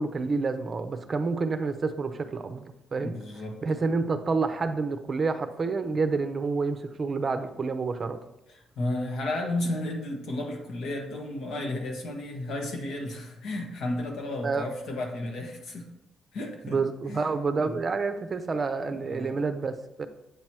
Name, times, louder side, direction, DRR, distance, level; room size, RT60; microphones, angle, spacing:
voice 1, 0.0-3.1 3.6-8.2 14.4-14.6 16.6-20.1, right 4 dB, 40° right, 9 dB, 0.6 m, -28 dB
voice 2, 3.0-4.0 8.5-15.9 16.3-16.8 17.1-17.3 17.6-17.8 18.9-19.4, left 1 dB, 75° left, 2 dB, 1.2 m, -33 dB
8.1 x 2.9 x 4.7 m, 0.87 s
cardioid pair, 90°, 0 cm